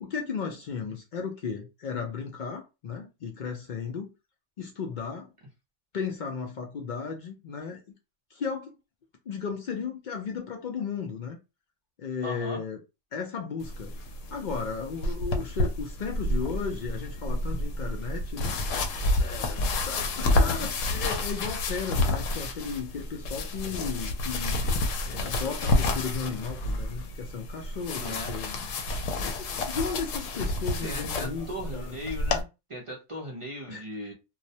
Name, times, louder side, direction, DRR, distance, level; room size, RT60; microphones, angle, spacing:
voice 1, 0.0-4.1 4.6-5.3 5.9-7.8 8.3-8.7 9.3-11.4 12.0-12.8 13.1-13.9 14.3-18.5 19.2-24.6 25.0-28.7 29.4-31.5 31.7-32.0 33.7-33.8, left 5 dB, 65° left, 0.5 m, -35 dB
voice 2, 12.2-12.6 27.9-28.4 30.8-34.1, equal, 45° right, 0.4 m, -38 dB
sound 1, 13.6-32.4, left 2 dB, 85° left, 0.9 m, -29 dB
2.3 x 2.1 x 2.6 m
omnidirectional pair, 1.3 m